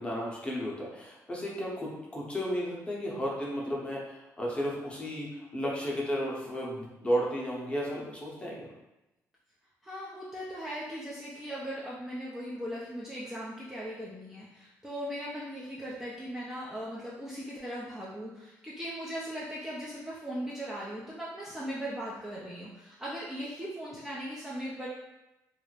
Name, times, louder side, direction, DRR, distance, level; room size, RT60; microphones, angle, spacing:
voice 1, 0.0-8.7, equal, 15° left, -4 dB, 0.8 m, -33 dB
voice 2, 9.8-24.9, equal, 5° right, -7 dB, 0.5 m, -39 dB
2.4 x 2.0 x 3.1 m, 0.97 s
cardioid pair, 90°, 7 cm